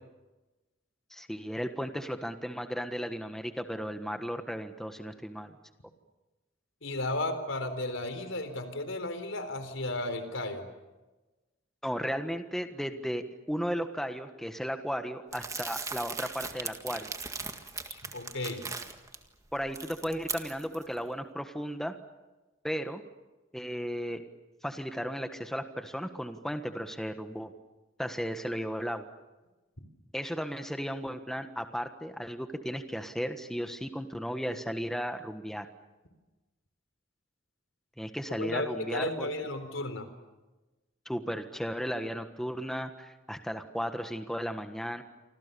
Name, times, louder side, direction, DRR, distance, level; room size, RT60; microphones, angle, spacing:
voice 1, 1.1-5.6 11.8-17.1 19.5-21.9 22.6-23.0 23.5-24.2 24.6-27.5 28.0-29.1 30.1-35.7 38.0-39.3 41.0-45.0, equal, ahead, 8 dB, 1.4 m, -35 dB
voice 2, 6.8-10.7 17.9-18.7 38.4-40.1, left 2 dB, 85° left, 9 dB, 4.0 m, -34 dB
Crumpling crinkling, 15.3-19.2 19.6-20.8, right 4 dB, 15° right, 1.9 m, -38 dB
29.0 x 25.5 x 6.9 m, 1.1 s
head